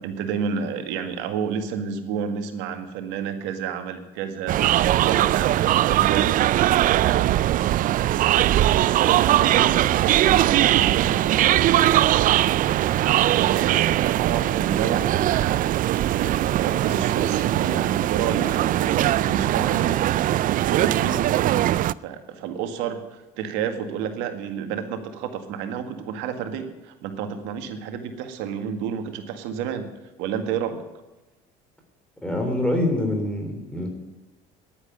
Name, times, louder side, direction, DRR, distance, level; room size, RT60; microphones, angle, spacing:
voice 1, 0.0-4.6 5.0-6.3 6.9-7.2 9.0-12.0 12.6-15.8 16.1-19.9 20.7-21.5 22.0-23.0 23.4-29.9 30.2-30.8, right 7 dB, 80° right, 7 dB, 1.9 m, -30 dB
sound 1, 4.5-21.9, right 13 dB, 50° right, 0.4 m, -20 dB
voice 2, 32.2-33.9, left 1 dB, 5° left, 3 dB, 3.6 m, -25 dB
10.5 x 9.7 x 9.2 m, 1.1 s
supercardioid pair, 95°, 18 cm